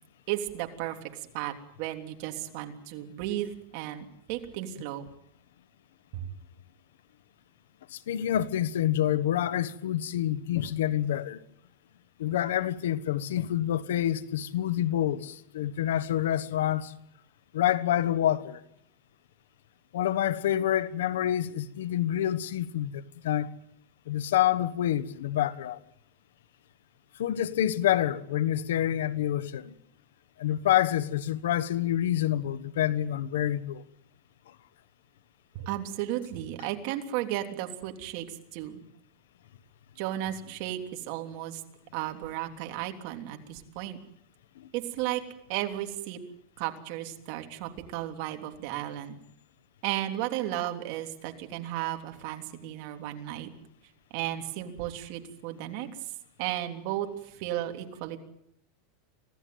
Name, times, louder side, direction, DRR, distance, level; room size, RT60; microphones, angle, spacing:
voice 1, 0.3-1.0 1.3-1.5 1.8-5.1 6.1-6.3 35.5-38.8 40.0-41.6 41.9-44.0 44.7-45.2 45.5-46.2 46.6-49.1 49.8-53.5 54.1-55.9 56.4-58.2, right 13 dB, 50° right, 3.2 m, -34 dB
voice 2, 7.9-11.4 12.2-16.9 17.5-18.6 19.9-23.5 24.1-25.8 27.2-29.7 30.4-33.8 44.6-44.7, left 12 dB, 90° left, 1.3 m, -27 dB
25.5 x 16.5 x 9.4 m
supercardioid pair, 150°, 0 cm